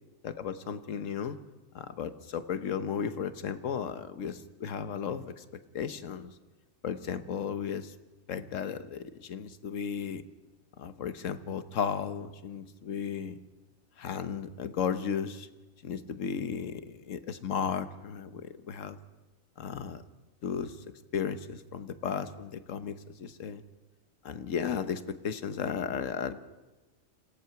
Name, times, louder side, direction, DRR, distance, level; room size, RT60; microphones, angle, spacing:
voice 1, 0.2-1.4 1.7-5.4 5.7-6.4 6.8-7.9 8.3-10.2 10.8-13.4 14.0-15.5 15.8-19.0 19.6-20.0 20.4-20.8 21.1-23.6 24.2-26.4, left 7 dB, 75° left, 11 dB, 1.4 m, -35 dB
26.5 x 17.0 x 5.9 m, 1.1 s
omnidirectional pair, 1.3 m